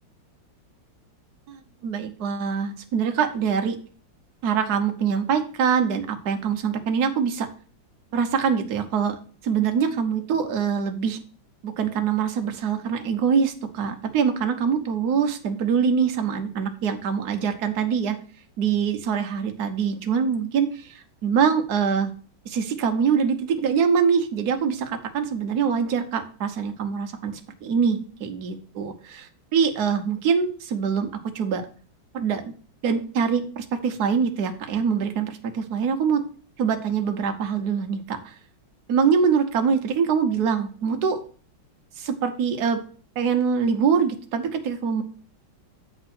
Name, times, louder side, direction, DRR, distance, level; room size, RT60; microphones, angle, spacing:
voice 1, 1.5-3.8 4.4-7.5 8.1-9.2 9.4-11.2 11.6-18.2 18.6-22.1 22.4-31.1 31.3-31.6 32.1-32.5 32.8-36.2 36.6-38.3 38.9-41.2 42.0-42.8 43.2-45.0, right 6 dB, 60° right, 6 dB, 1.3 m, -24 dB
7.9 x 3.6 x 5.9 m, 0.42 s
omnidirectional pair, 2.2 m